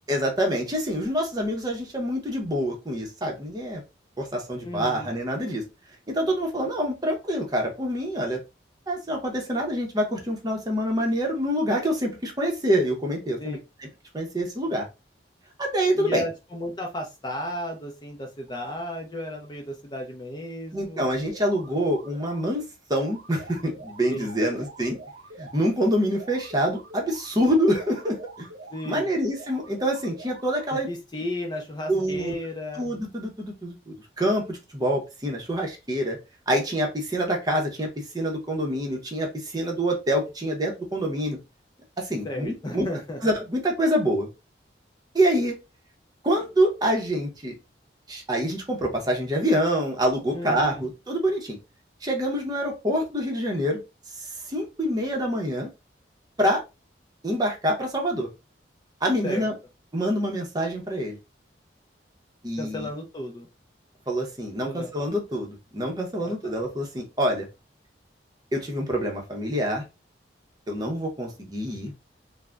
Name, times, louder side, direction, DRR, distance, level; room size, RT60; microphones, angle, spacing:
voice 1, 0.1-3.8 4.2-5.6 6.1-8.4 8.9-13.9 14.1-14.9 15.6-16.2 20.7-22.6 22.9-25.0 25.4-28.5 28.9-30.9 31.9-32.3 32.7-36.2 36.5-37.9 38.1-41.4 42.0-42.9 43.2-44.3 45.1-45.6 46.2-47.5 48.1-51.6 52.0-53.8 54.2-55.7 56.4-56.6 57.2-58.3 59.0-59.5 59.9-61.2 62.4-62.9 64.1-67.5 68.5-69.8 70.7-71.9, equal, 20° right, 1 dB, 0.6 m, -26 dB
voice 2, 4.6-5.1 13.4-13.6 15.9-21.1 24.1-24.5 28.7-29.1 30.7-32.8 42.2-43.2 50.3-50.9 59.2-59.5 62.6-63.5 64.6-64.9 66.2-66.3, left 1 dB, 20° left, 2 dB, 0.4 m, -34 dB
sound 1, 21.3-22.5 22.9-25.7 26.1-28.9 29.3-30.9, right 2 dB, 70° right, 0.6 m, -45 dB
2.4 x 2.0 x 3.3 m, 0.26 s
head